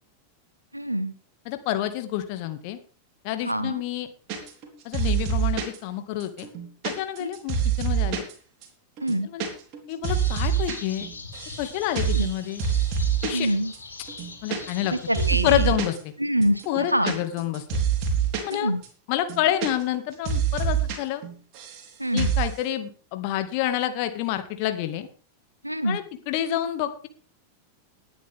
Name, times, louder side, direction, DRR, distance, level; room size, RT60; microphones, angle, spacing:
voice 1, 0.7-1.1 3.4-3.8 7.2-7.3 9.0-9.3 12.0-12.3 13.3-13.7 14.9-15.8 16.2-17.1 18.5-18.8 22.0-22.3 25.6-26.0, right 1 dB, 85° right, 13 dB, 1.3 m, -25 dB
voice 2, 1.5-2.8 3.2-4.1 4.8-6.5 6.8-8.2 9.3-9.5 9.9-11.1 11.6-12.6 13.2-13.5 14.4-14.9 15.4-16.1 16.7-17.8 18.4-18.7 19.1-21.2 22.1-25.1 25.9-27.1, left 12 dB, 45° left, 9 dB, 2.0 m, -28 dB
sound 1, 4.3-4.7 4.9-5.8 6.2-8.3 8.6-8.7 9.0-9.5 9.7-10.8 11.0-11.6 12.0-12.3 12.6-13.5 13.7-13.8 14.1-14.9 15.1-16.0 16.4-18.5 18.8-18.9 19.2-20.0 20.3-21.0 21.2-21.9 22.2-22.5, right 7 dB, 40° right, 4.1 m, -25 dB
sound 2, 10.0-15.3, left 3 dB, 75° left, 4.2 m, -41 dB
19.0 x 10.0 x 3.7 m, 0.40 s
figure-of-eight pair, 90°, 0 cm